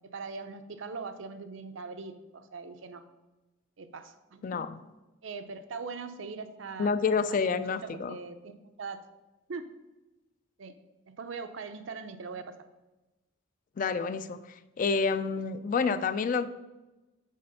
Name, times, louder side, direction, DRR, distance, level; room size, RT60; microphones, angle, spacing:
voice 1, 0.1-3.0 3.8-4.6 5.2-6.9 7.5-8.5 8.8-9.0 9.5-9.6 10.6-10.7 11.1-12.5, right 4 dB, 75° right, 9 dB, 0.6 m, -41 dB
voice 2, 6.8-8.2 13.8-16.5, left 5 dB, 40° left, 12 dB, 0.3 m, -28 dB
6.5 x 4.3 x 5.5 m, 1.1 s
head